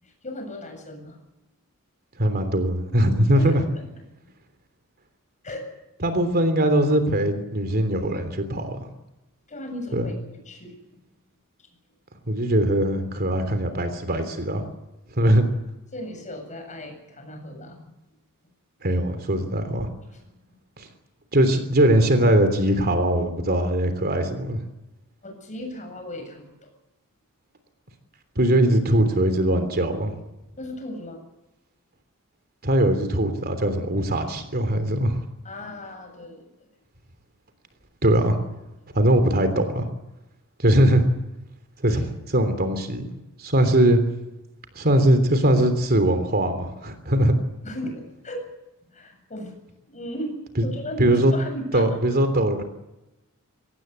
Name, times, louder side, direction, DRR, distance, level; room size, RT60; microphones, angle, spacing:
voice 1, 0.0-1.2 3.3-3.9 5.4-5.7 9.5-10.7 15.9-17.9 20.1-20.3 25.2-26.7 30.6-31.2 35.4-36.7 41.9-42.0 47.6-48.5 48.9-49.5 49.9-51.9, left 1 dB, 35° left, 4 dB, 7.9 m, -36 dB
voice 2, 2.2-3.6 6.0-8.8 9.9-10.1 12.3-14.6 15.2-15.4 18.8-19.9 20.8-20.9 21.3-24.6 28.4-30.1 32.6-35.2 38.0-38.4 38.9-39.8 40.6-41.0 41.8-43.1 43.4-44.0 44.7-47.3 51.0-51.3 51.7-52.6, right 1 dB, 45° right, 8 dB, 3.2 m, -21 dB
25.0 x 18.5 x 8.2 m, 0.96 s
head